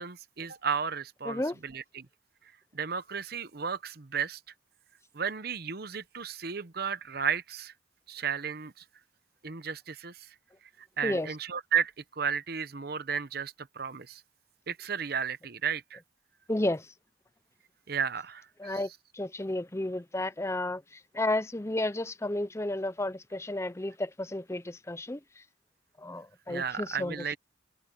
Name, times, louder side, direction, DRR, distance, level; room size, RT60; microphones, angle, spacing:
voice 1, 0.0-2.1 2.7-4.4 5.1-7.7 8.1-8.7 9.4-10.2 11.0-14.2 14.7-16.0 17.9-18.8 26.5-27.4, right 7 dB, 50° right, 0.9 m, -33 dB
voice 2, 16.5-16.8 18.6-18.9 19.1-20.8 21.1-25.2 26.0-27.2, left 1 dB, 15° left, 0.6 m, -32 dB
open air
head